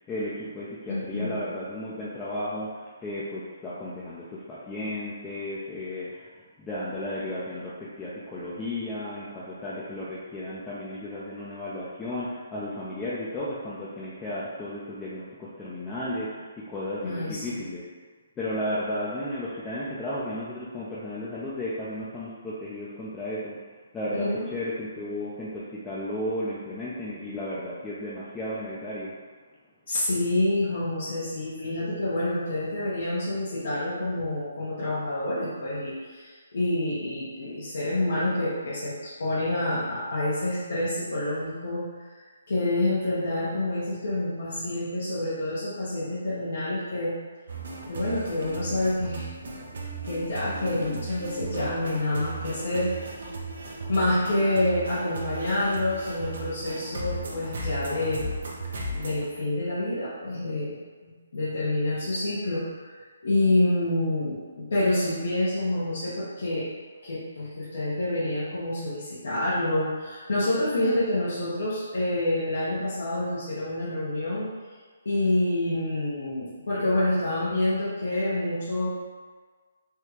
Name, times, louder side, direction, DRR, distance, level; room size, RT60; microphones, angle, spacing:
voice 1, 0.0-6.3 6.6-17.8 18.4-23.6 23.9-29.1, left 1 dB, 15° left, -9 dB, 0.4 m, -34 dB
voice 2, 0.9-1.4 17.0-17.6 24.1-24.5 29.9-47.2 47.9-49.3 50.0-53.0 53.9-58.3 58.9-60.7 61.0-63.0 63.2-66.7 67.0-74.5 75.0-78.9, left 1 dB, 75° left, -9 dB, 0.9 m, -27 dB
sound 1, 47.5-59.3, right 2 dB, 65° right, 0.6 m, -36 dB
3.5 x 2.3 x 2.9 m, 1.5 s
hypercardioid pair, 150°, 0 cm